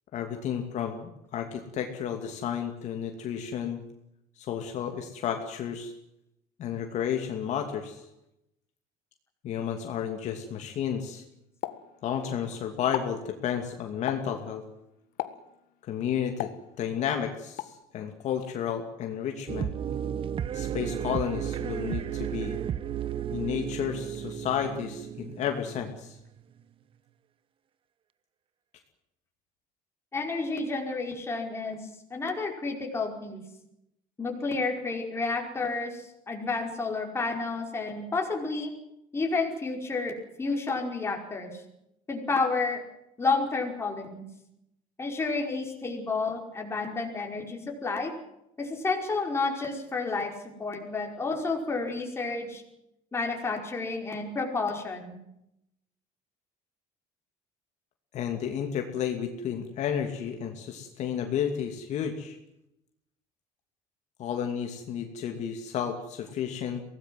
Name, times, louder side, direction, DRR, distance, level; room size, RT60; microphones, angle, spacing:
voice 1, 0.1-3.8 4.4-5.9 6.6-8.0 9.4-11.2 12.0-14.6 15.9-16.5 16.8-19.7 20.5-22.6 23.3-26.2 58.1-62.4 64.2-66.8, left 8 dB, 50° left, 4 dB, 2.6 m, -32 dB
Explosion, 11.6-12.5 12.8-13.2 14.1-14.4 15.2-15.6 16.4-17.1 17.6-17.8, left 14 dB, 75° left, 1.8 m, -36 dB
sound 1, 19.5-26.4, right 9 dB, 35° right, 1.0 m, -34 dB
voice 2, 30.1-31.8 32.1-33.4 34.2-38.7 39.1-41.6 42.1-42.8 43.2-44.2 45.0-48.1 48.6-50.3 50.6-52.6 53.1-55.2, left 3 dB, 15° left, 2 dB, 5.0 m, -30 dB
24.0 x 18.5 x 7.7 m, 0.82 s
cardioid pair, 150°, 15 cm